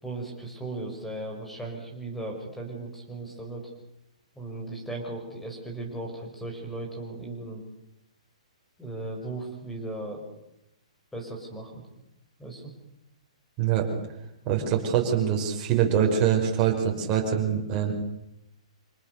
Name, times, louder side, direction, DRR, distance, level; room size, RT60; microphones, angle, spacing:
voice 1, 0.0-3.7 4.4-7.6 8.8-10.2 11.1-11.8 12.4-12.7, right 2 dB, 5° left, 2 dB, 5.7 m, -37 dB
voice 2, 13.6-13.9 14.5-17.9, right 8 dB, 25° right, 0 dB, 5.7 m, -24 dB
26.5 x 19.5 x 6.9 m, 0.86 s
hypercardioid pair, 150°, 4 cm